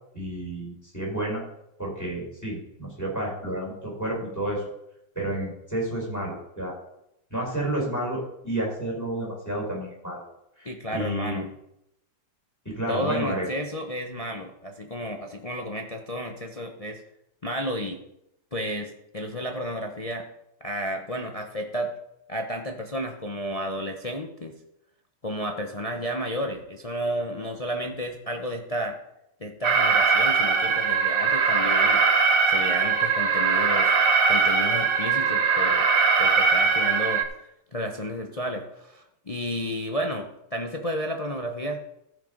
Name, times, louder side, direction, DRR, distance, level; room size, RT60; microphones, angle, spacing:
voice 1, 0.1-1.4 1.8-4.6 5.1-6.7 7.3-10.2 10.6-11.4 12.6-13.5, right 1 dB, 10° left, -2 dB, 4.6 m, -30 dB
voice 2, 10.6-11.5 12.9-17.0 17.4-18.0 18.5-20.3 20.6-21.9 22.3-24.5 25.2-29.0 29.4-32.0 32.5-34.0 34.3-35.9 36.2-37.2 37.7-41.8, equal, 50° left, 3 dB, 0.4 m, -32 dB
Alarm, 29.6-37.2, right 5 dB, 55° right, 1.2 m, -21 dB
14.0 x 5.7 x 5.2 m, 0.81 s
omnidirectional pair, 2.1 m